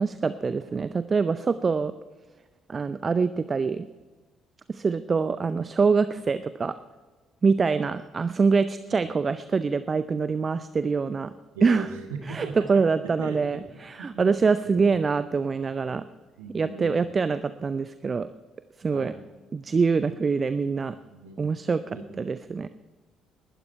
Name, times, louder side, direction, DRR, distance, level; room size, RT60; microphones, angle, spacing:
voice 1, 0.0-1.9 2.7-3.9 4.7-6.7 7.4-11.3 11.6-11.9 12.3-16.0 16.5-18.3 18.8-19.1 19.5-20.9 21.4-21.8 22.2-22.7, right 5 dB, 35° right, 13 dB, 0.5 m, -25 dB
voice 2, 11.5-13.6 14.0-14.3 14.6-14.8 16.4-17.0 18.9-19.2 20.9-21.4 21.9-22.0, right 3 dB, 75° right, 2 dB, 2.1 m, -39 dB
19.0 x 12.0 x 4.6 m, 1.3 s
figure-of-eight pair, 45°, 0 cm